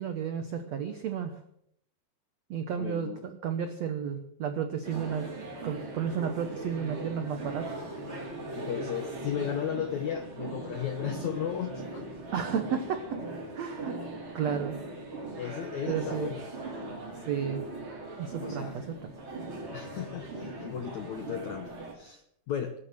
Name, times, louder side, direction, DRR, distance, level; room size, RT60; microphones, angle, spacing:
voice 1, 0.0-1.4 2.5-7.7 12.3-13.2 13.5-14.0 14.3-14.8 15.9-16.3 17.3-17.6 18.2-19.1, right 7 dB, 80° right, 7 dB, 1.5 m, -32 dB
voice 2, 2.8-3.2 8.5-12.1 15.4-16.4 18.4-18.8 19.7-22.7, left 9 dB, 75° left, 7 dB, 1.7 m, -35 dB
sound 1, 4.8-21.9, right 2 dB, 35° right, 3.9 m, -39 dB
20.5 x 9.2 x 7.6 m, 0.72 s
omnidirectional pair, 4.7 m